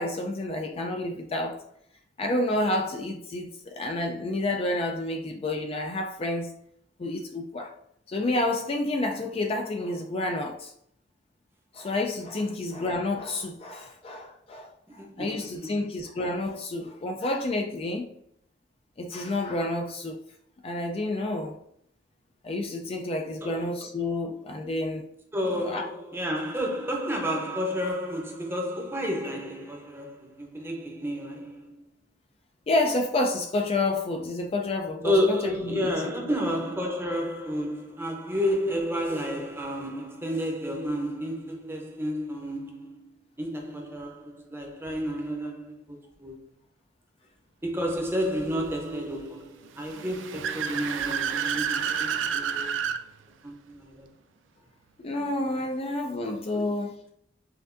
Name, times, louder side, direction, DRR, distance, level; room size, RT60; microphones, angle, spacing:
voice 1, 0.0-1.6 2.2-6.5 7.0-7.7 8.1-10.7 11.7-14.7 14.9-18.1 19.0-20.2 20.6-21.5 22.4-25.0 25.5-25.8 32.7-36.1 55.0-57.0, left 2 dB, 30° left, 0.4 m, -29 dB
voice 2, 15.0-15.7 23.4-23.7 25.3-31.8 35.0-43.0 43.4-46.4 47.6-52.8 53.4-54.1 56.5-56.7, equal, 15° right, 0.7 m, -31 dB
Car / Accelerating revving vroom, 49.8-53.0, right 7 dB, 80° right, 0.4 m, -29 dB
5.7 x 2.5 x 2.5 m
head